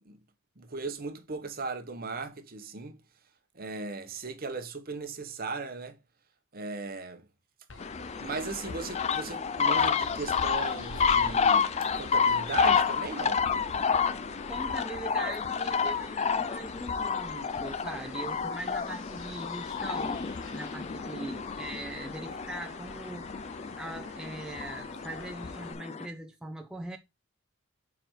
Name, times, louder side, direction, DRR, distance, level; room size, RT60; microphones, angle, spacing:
voice 1, 0.6-3.0 3.5-6.0 6.5-7.3 8.2-13.4, right 3 dB, 45° right, 1.1 m, -37 dB
sound 1, 7.7-25.7, left 3 dB, 60° left, 1.2 m, -46 dB
sound 2, 7.8-26.1, left 6 dB, 30° left, 0.4 m, -30 dB
voice 2, 14.5-20.2 20.5-27.0, right 1 dB, 5° right, 0.7 m, -41 dB
4.9 x 4.9 x 6.2 m
head